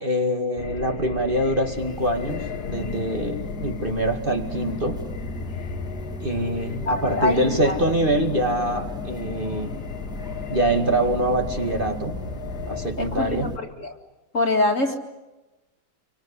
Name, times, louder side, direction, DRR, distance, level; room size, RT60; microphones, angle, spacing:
voice 1, 0.0-5.0 6.2-9.8 10.5-12.2 12.7-13.6, right 1 dB, 25° right, 4 dB, 2.3 m, -24 dB
sound 1, 0.6-12.9, left 7 dB, 60° left, 1.7 m, -35 dB
sound 2, 1.7-13.6, equal, ahead, 1.7 m, -36 dB
voice 2, 6.9-7.8 13.0-13.9 14.3-15.0, left 2 dB, 40° left, 4 dB, 2.5 m, -24 dB
28.0 x 25.0 x 8.3 m, 1.1 s
omnidirectional pair, 2.0 m